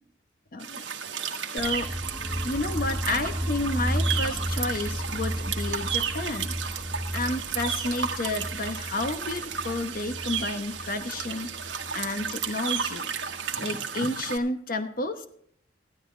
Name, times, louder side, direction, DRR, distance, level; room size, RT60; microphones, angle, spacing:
voice 1, 0.5-0.8 1.5-1.9 2.4-6.5 7.1-11.5 11.9-13.1 13.6-15.3, left 2 dB, 45° left, 8 dB, 1.0 m, -31 dB
sound 1, 0.6-14.4, right 7 dB, 70° right, 1.5 m, -33 dB
sound 2, 1.6-13.5, equal, ahead, 1.0 m, -34 dB
15.5 x 12.0 x 3.3 m, 0.64 s
head